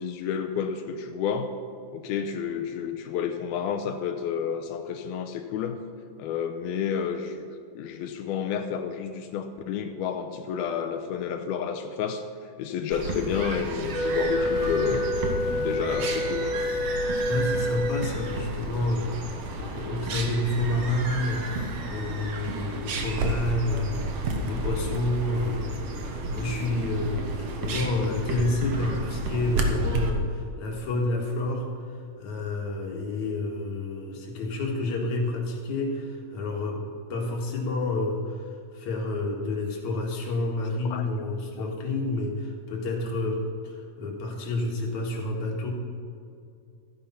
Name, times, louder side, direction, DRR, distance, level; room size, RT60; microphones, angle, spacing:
voice 1, 0.0-1.5 1.9-5.8 6.2-7.4 7.8-15.2 15.5-16.7 40.9-41.3 41.6-41.7, left 7 dB, 85° left, 6 dB, 2.7 m, -30 dB
sound 1, 12.9-30.1, right 2 dB, 60° right, 1.7 m, -31 dB
Wind instrument woodwind instrument, 13.9-18.3, left 1 dB, 5° left, 2.5 m, -28 dB
voice 2, 17.3-21.6 21.9-31.7 32.2-36.8 37.1-45.7, left 2 dB, 55° left, 0 dB, 2.9 m, -29 dB
14.0 x 10.5 x 5.7 m, 2.5 s
omnidirectional pair, 4.3 m